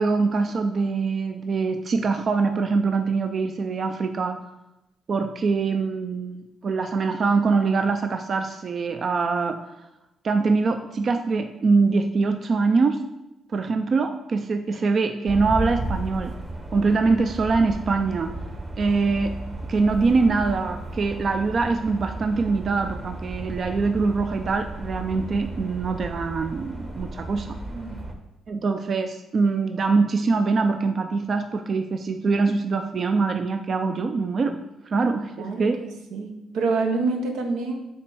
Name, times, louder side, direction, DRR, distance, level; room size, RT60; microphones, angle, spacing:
voice 1, 0.0-4.4 5.1-9.6 10.2-13.0 13.5-16.3 16.7-18.3 18.8-19.4 19.7-27.6 28.5-34.6 34.9-35.8, right 4 dB, 45° right, 7 dB, 0.4 m, -23 dB
sound 1, 15.3-28.1, right 1 dB, 25° right, 1.0 m, -34 dB
voice 2, 27.7-28.1 35.4-37.8, right 3 dB, 85° right, 4 dB, 0.8 m, -27 dB
7.0 x 3.4 x 4.7 m, 0.95 s
cardioid pair, 90°, 0 cm